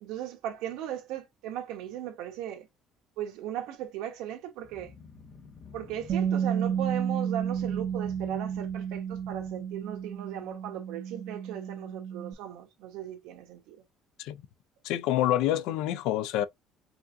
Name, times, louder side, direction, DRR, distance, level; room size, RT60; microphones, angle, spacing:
voice 1, 0.0-2.7 3.2-4.9 5.7-13.8, right 11 dB, 85° right, 1.0 m, -37 dB
sound 1, 4.6-10.6, left 4 dB, 25° left, 0.6 m, -52 dB
Bass guitar, 6.1-12.3, right 8 dB, 40° right, 0.4 m, -32 dB
voice 2, 14.8-16.5, left 12 dB, 85° left, 0.4 m, -27 dB
4.7 x 2.5 x 2.6 m
cardioid pair, 175°, 0 cm